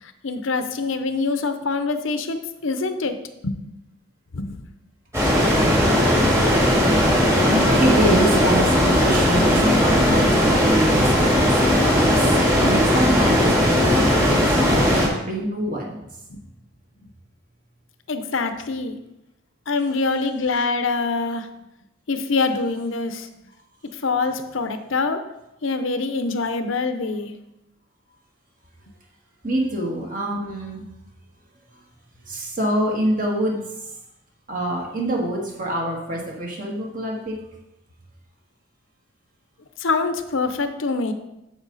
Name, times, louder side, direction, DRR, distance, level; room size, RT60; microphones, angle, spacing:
voice 1, 0.0-3.2 3.4-3.5 4.3-4.6 16.3-16.4 18.1-19.0 19.7-21.5 22.1-23.3 24.0-25.2 25.6-27.3 39.8-41.1, left 3 dB, 70° left, 9 dB, 0.7 m, -24 dB
sound 1, 5.1-15.1, equal, 15° right, 1.9 m, -18 dB
voice 2, 7.5-12.2 12.6-14.3 14.6-16.1 29.4-30.8 32.3-33.6 34.5-37.3, right 1 dB, 40° right, -2 dB, 2.0 m, -25 dB
8.9 x 7.0 x 4.0 m, 0.88 s
head